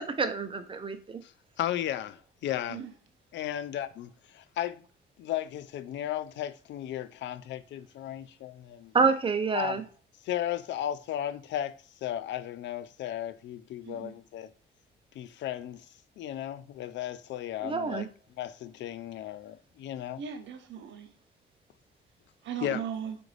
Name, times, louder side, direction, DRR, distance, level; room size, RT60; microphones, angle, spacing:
voice 1, 0.0-1.2 8.9-9.8 17.6-18.1, right 5 dB, 25° right, 0.7 m, -27 dB
voice 2, 1.6-2.8 3.3-4.1 4.3-4.8 5.2-8.9 9.5-9.8 10.2-14.5 15.2-15.8 16.2-18.1 18.4-20.2 22.6-22.8, left 12 dB, 65° left, 0.4 m, -35 dB
voice 3, 20.2-21.1 22.4-23.2, right 8 dB, 70° right, 0.8 m, -37 dB
4.9 x 2.6 x 3.1 m
cardioid pair, 90°, 20 cm